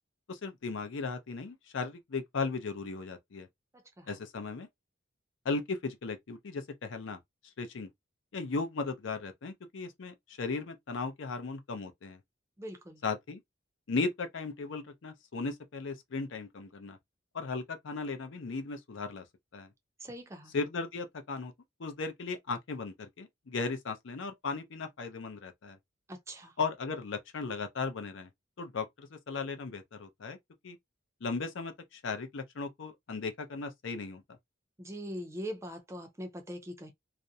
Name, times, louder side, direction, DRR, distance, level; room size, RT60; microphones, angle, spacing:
voice 1, 0.3-3.5 4.1-4.7 5.4-7.2 7.6-7.9 8.3-12.2 13.0-13.4 13.9-17.0 17.3-19.2 19.5-19.7 20.5-21.5 21.8-25.8 26.6-28.3 28.6-30.4 30.6-30.8 31.2-34.2, left 4 dB, 65° left, 0.5 m, -36 dB
voice 2, 3.7-4.2 12.6-13.0 20.0-20.5 26.1-26.6 34.8-36.9, equal, 15° right, 0.4 m, -42 dB
2.5 x 2.0 x 2.7 m
head